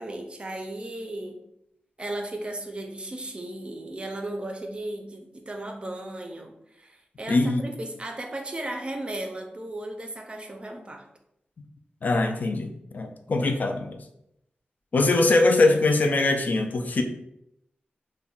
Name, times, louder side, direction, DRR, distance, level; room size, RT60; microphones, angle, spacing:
voice 1, 0.0-1.4 2.0-11.1, right 1 dB, 30° right, 3 dB, 0.4 m, -35 dB
voice 2, 7.3-7.6 12.0-14.0 14.9-17.0, left 2 dB, 55° left, 5 dB, 0.3 m, -22 dB
2.4 x 2.1 x 3.7 m, 0.79 s
wide cardioid pair, 100°, 3 cm